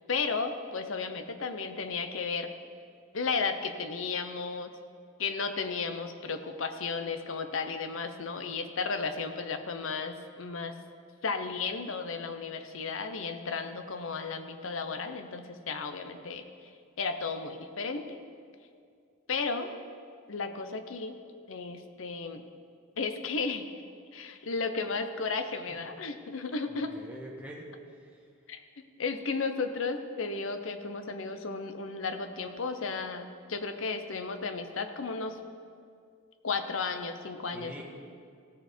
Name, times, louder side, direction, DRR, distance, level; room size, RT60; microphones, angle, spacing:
voice 1, 0.1-2.5 3.1-4.7 5.2-10.7 11.2-16.4 17.0-18.0 19.3-19.7 20.3-21.1 21.5-22.4 23.0-23.7 24.1-26.9 28.5-28.6 29.0-35.4 36.4-37.8, left 4 dB, 70° left, 8 dB, 0.7 m, -34 dB
voice 2, 26.7-27.7 28.0-28.2 37.5-37.8, right 1 dB, 5° right, -2 dB, 1.3 m, -45 dB
16.0 x 7.0 x 4.4 m, 2.2 s
head